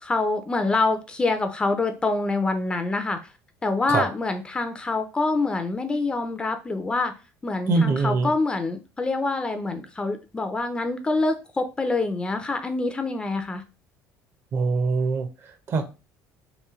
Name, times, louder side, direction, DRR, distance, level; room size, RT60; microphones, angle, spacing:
voice 1, 0.0-3.2 3.6-7.1 7.4-13.6, left 3 dB, 15° left, 0.4 m, -26 dB
voice 2, 7.7-8.3 14.5-15.8, right 4 dB, 45° right, 0.6 m, -23 dB
3.1 x 2.6 x 3.5 m
cardioid pair, 140°, 6 cm